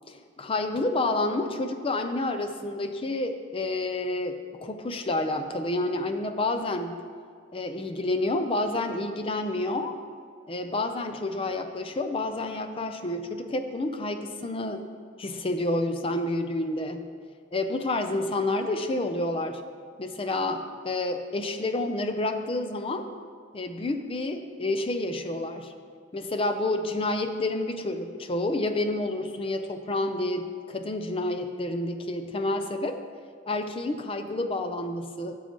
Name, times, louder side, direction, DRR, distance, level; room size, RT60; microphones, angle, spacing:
voice 1, 0.1-7.0 7.5-9.9 10.5-14.8 15.2-17.1 17.5-19.6 20.0-23.1 23.5-25.7 26.1-33.0 33.5-35.3, left 2 dB, 30° left, 7 dB, 0.5 m, -29 dB
13.5 x 7.0 x 3.0 m, 2.1 s
head